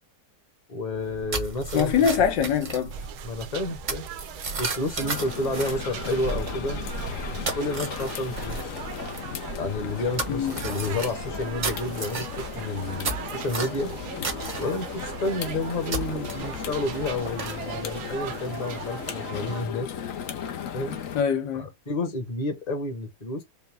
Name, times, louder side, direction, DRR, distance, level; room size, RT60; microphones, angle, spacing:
voice 1, 0.7-1.9 3.2-4.0 4.6-7.1 7.4-8.8 9.5-13.9 14.6-19.9 20.7-21.0 21.5-23.4, left 2 dB, 25° left, 1.0 m, -30 dB
sound 1, 0.9-18.9, right 3 dB, 35° right, 0.8 m, -35 dB
voice 2, 1.7-2.9 10.3-10.6 21.1-21.7, left 7 dB, 80° left, 1.7 m, -23 dB
sound 2, 2.9-19.7, right 10 dB, 70° right, 1.2 m, -41 dB
sound 3, 5.0-21.2, left 8 dB, 60° left, 0.9 m, -36 dB
5.2 x 2.2 x 3.3 m
omnidirectional pair, 1.9 m